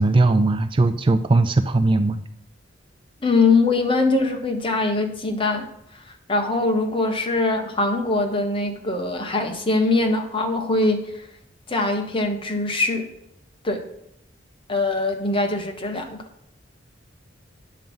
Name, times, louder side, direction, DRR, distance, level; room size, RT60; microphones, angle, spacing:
voice 1, 0.0-2.2, right 2 dB, 25° right, 10 dB, 0.4 m, -19 dB
voice 2, 3.2-5.7 6.3-11.0 11.7-13.1 13.6-13.8 14.7-16.2, left 3 dB, 30° left, 4 dB, 1.3 m, -22 dB
9.2 x 7.2 x 5.4 m, 0.75 s
head